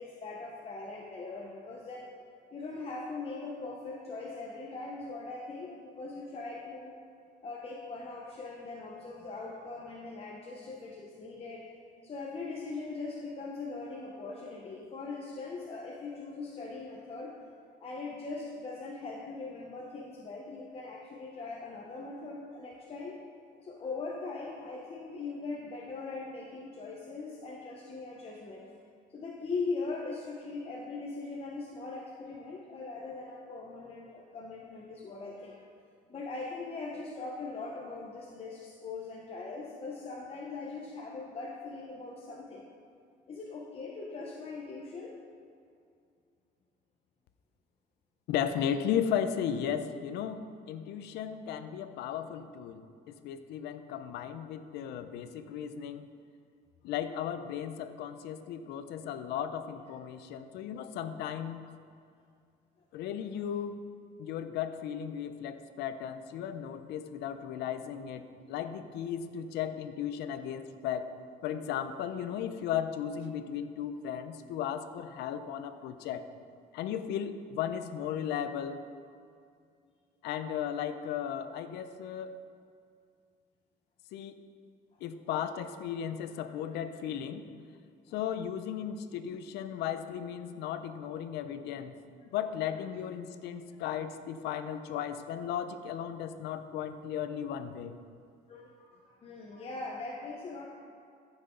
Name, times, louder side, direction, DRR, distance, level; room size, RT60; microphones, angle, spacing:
voice 1, 0.0-2.1 2.5-6.9 7.4-11.7 12.0-17.3 17.8-23.2 23.5-28.6 29.1-35.7 36.1-42.7 43.3-45.2 98.5-100.7, left 3 dB, 35° left, -2 dB, 1.0 m, -40 dB
voice 2, 48.3-56.1 56.8-61.7 62.9-63.8 64.2-71.1 71.4-76.3 76.7-78.8 80.2-82.4 84.1-84.4 85.0-87.4 88.1-92.0 92.3-98.0, left 9 dB, 85° left, 10 dB, 0.6 m, -35 dB
14.5 x 6.3 x 3.8 m, 2.3 s
cardioid pair, 110°, 17 cm